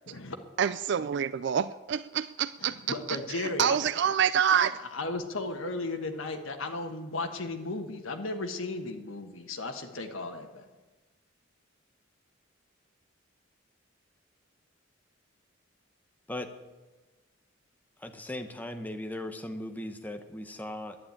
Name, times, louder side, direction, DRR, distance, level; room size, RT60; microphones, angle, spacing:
voice 1, 0.6-2.8 3.3-4.8, right 8 dB, 60° right, 16 dB, 0.3 m, -27 dB
voice 2, 2.6-3.8 4.9-10.7, left 2 dB, 85° left, 5 dB, 1.4 m, -35 dB
voice 3, 18.0-21.0, left 1 dB, 10° left, 6 dB, 0.9 m, -38 dB
11.0 x 10.0 x 8.7 m, 1.2 s
head